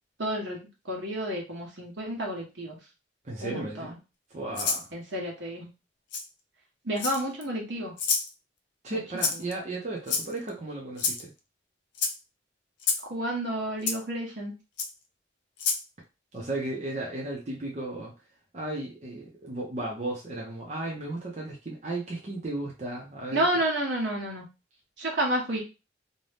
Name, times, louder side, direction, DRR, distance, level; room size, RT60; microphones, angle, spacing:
voice 1, 0.2-0.6 0.9-2.8 3.4-4.0 4.9-5.7 6.8-7.9 8.9-9.0 9.3-9.4 13.1-14.5 23.3-24.5 25.0-25.6, right 1 dB, 80° right, -1 dB, 1.1 m, -30 dB
voice 2, 3.2-3.9 4.3-4.9 8.8-11.3 16.3-18.1 18.5-23.4, right 2 dB, 40° right, -3 dB, 0.6 m, -35 dB
Rattle (instrument), 4.5-4.8 6.1-6.2 7.0-7.4 8.0-8.3 9.2-9.5 10.1-10.5 11.0-11.2 11.9-12.1 12.8-13.0 13.9-14.0 14.8-14.9 15.6-15.8, left 5 dB, 75° left, 0.5 m, -28 dB
2.7 x 2.2 x 3.3 m, 0.29 s
head